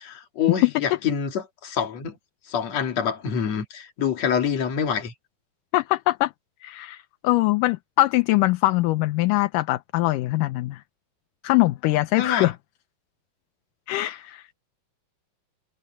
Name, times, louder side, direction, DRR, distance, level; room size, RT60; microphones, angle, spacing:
voice 1, 0.0-2.2 2.5-5.1 12.2-12.5, left 7 dB, 50° left, 3.3 m, -26 dB
voice 2, 5.7-6.3 6.6-10.8 11.4-12.5 13.9-14.5, left 19 dB, 75° left, 2.2 m, -22 dB
omnidirectional pair, 4.1 m